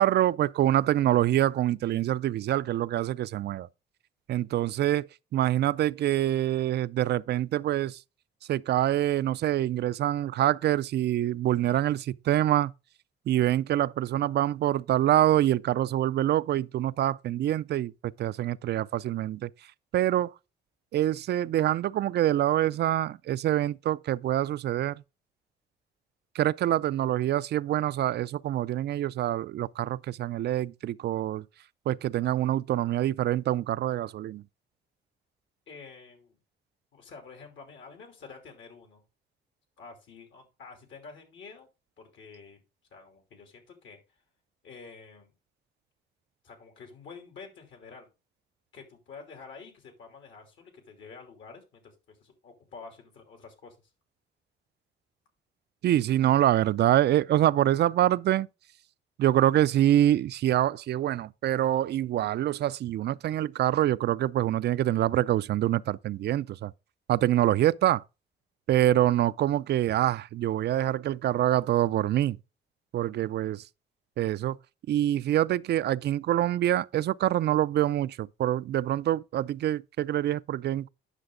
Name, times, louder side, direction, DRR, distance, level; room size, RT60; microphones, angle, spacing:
voice 1, 0.0-3.7 4.3-8.0 8.5-12.7 13.3-19.5 19.9-20.3 20.9-25.0 26.3-31.4 31.9-34.4 55.8-58.5 59.2-66.7 67.1-68.0 68.7-72.4 72.9-73.6 74.2-74.6 74.9-80.9, right 12 dB, 60° right, 0.4 m, -25 dB
voice 2, 35.7-36.4 36.9-39.0 39.8-41.7 42.0-42.6 42.9-44.2 44.6-45.3 46.4-48.1 48.7-53.8, left 4 dB, 70° left, 2.9 m, -48 dB
9.9 x 5.9 x 3.7 m
cardioid pair, 90°, 20 cm